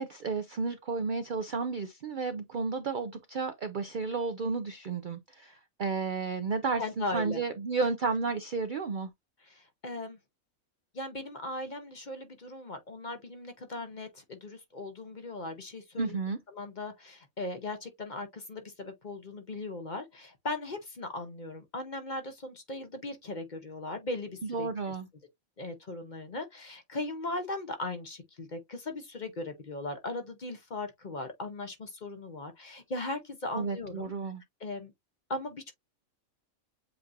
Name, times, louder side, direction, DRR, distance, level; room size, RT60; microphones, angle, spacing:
voice 1, 0.0-9.1 16.0-16.4 24.4-25.1 33.5-34.4, right 4 dB, 60° right, 0.5 m, -32 dB
voice 2, 6.8-7.4 9.4-10.2 10.9-16.2 16.5-24.9 25.6-34.1 34.6-34.9 35.3-35.7, left 2 dB, 40° left, 0.8 m, -38 dB
7.7 x 2.6 x 2.5 m
omnidirectional pair, 1.4 m